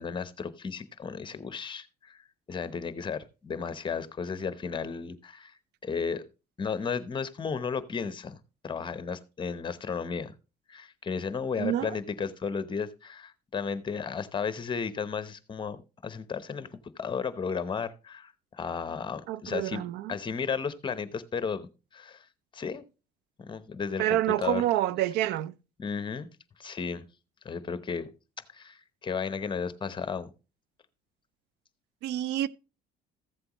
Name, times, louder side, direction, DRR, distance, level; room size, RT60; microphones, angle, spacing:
voice 1, 0.0-2.2 2.5-6.2 6.6-8.4 8.6-10.3 10.7-19.8 20.1-22.3 22.5-22.8 23.4-24.6 25.8-26.3 26.6-27.1 27.4-28.1 28.5-30.3, left 6 dB, 30° left, 0.9 m, -34 dB
voice 2, 11.6-12.0 19.3-20.1 24.0-25.5 32.0-32.5, right 13 dB, 85° right, 0.5 m, -28 dB
14.5 x 7.7 x 3.0 m
cardioid pair, 110°, 17 cm